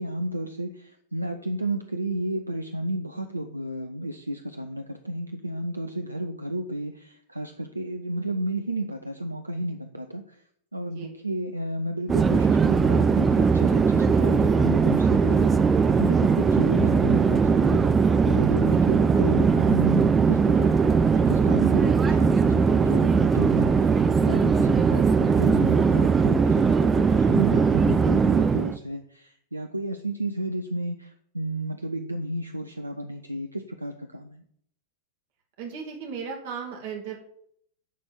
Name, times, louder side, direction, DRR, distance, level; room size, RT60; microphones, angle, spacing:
voice 1, 0.0-10.4 10.7-17.9 18.2-34.4, right 1 dB, 85° right, 6 dB, 0.6 m, -32 dB
Conversation / Chatter / Fixed-wing aircraft airplane, 12.1-28.8, right 5 dB, 20° right, 0.6 m, -20 dB
voice 2, 35.6-37.2, right 6 dB, 50° right, 1 dB, 2.4 m, -36 dB
11.0 x 4.3 x 7.4 m, 0.66 s
figure-of-eight pair, 90°, 0 cm